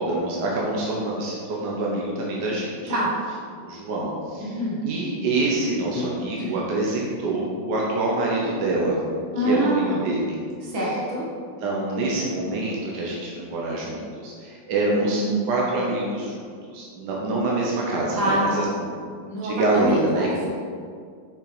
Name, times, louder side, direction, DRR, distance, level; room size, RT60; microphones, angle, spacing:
voice 1, 0.0-2.9 3.6-4.5 4.8-9.0 9.4-10.4 11.6-18.9 19.4-20.3, right 2 dB, 65° right, -3 dB, 1.7 m, -26 dB
voice 2, 2.9-3.2 4.4-4.8 5.6-6.0 6.4-6.6 9.3-10.0 10.6-11.3 15.0-15.5 18.1-18.7 19.3-20.5, right 1 dB, 85° right, -6 dB, 2.8 m, -26 dB
6.9 x 6.6 x 4.9 m, 2.1 s
omnidirectional pair, 2.1 m